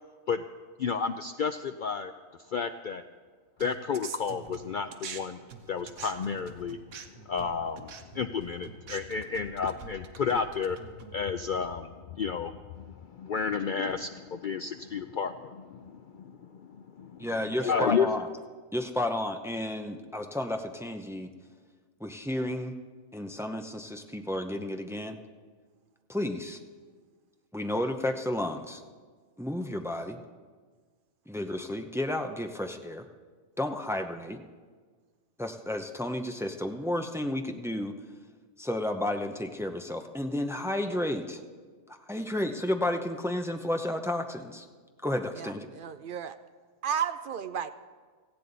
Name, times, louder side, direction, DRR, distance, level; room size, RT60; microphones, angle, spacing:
voice 1, 0.8-2.1 2.5-3.0 3.6-5.4 5.7-6.8 7.3-10.8 11.1-17.3 17.6-18.1, left 6 dB, 75° left, 9 dB, 0.4 m, -32 dB
sound 1, 3.6-5.2 5.5-11.2, right 7 dB, 85° right, 1.3 m, -45 dB
voice 2, 17.2-18.3 18.7-21.3 22.0-22.7 23.1-25.2 26.1-26.6 27.5-28.8 29.4-30.2 31.3-33.0 33.6-34.4 35.4-37.9 38.6-41.4 42.1-44.7 45.0-45.7, left 1 dB, 5° right, 5 dB, 0.3 m, -32 dB
voice 3, 45.4-46.4 46.8-47.7, right 8 dB, 60° right, 11 dB, 0.5 m, -33 dB
17.5 x 15.0 x 4.0 m, 1.5 s
omnidirectional pair, 1.4 m